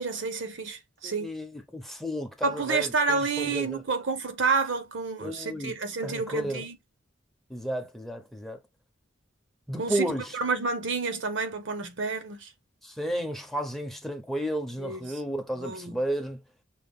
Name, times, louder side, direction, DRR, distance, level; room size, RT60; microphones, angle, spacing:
voice 1, 0.0-1.3 2.4-6.8 9.8-12.5 14.8-15.1 15.6-16.0, right 4 dB, 65° right, 0.9 m, -29 dB
voice 2, 1.0-3.8 5.2-5.7 6.0-6.7 7.5-8.6 9.7-10.3 12.8-16.4, equal, ahead, 0.7 m, -32 dB
5.5 x 2.3 x 3.6 m
head